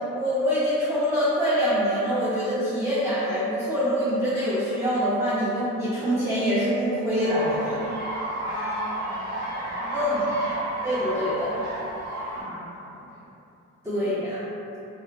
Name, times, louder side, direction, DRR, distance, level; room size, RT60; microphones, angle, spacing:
voice 1, 0.0-7.9 9.9-10.3 10.8-11.6 13.8-14.4, equal, 10° right, -11 dB, 0.5 m, -25 dB
sound 1, 7.2-12.4, right 1 dB, 30° right, 1.4 m, -32 dB
voice 2, 8.4-10.5 10.7-10.9 12.3-13.2 13.9-14.1, left 1 dB, 5° left, -10 dB, 1.0 m, -40 dB
2.7 x 2.1 x 2.3 m, 2.7 s
cardioid pair, 90°, 30 cm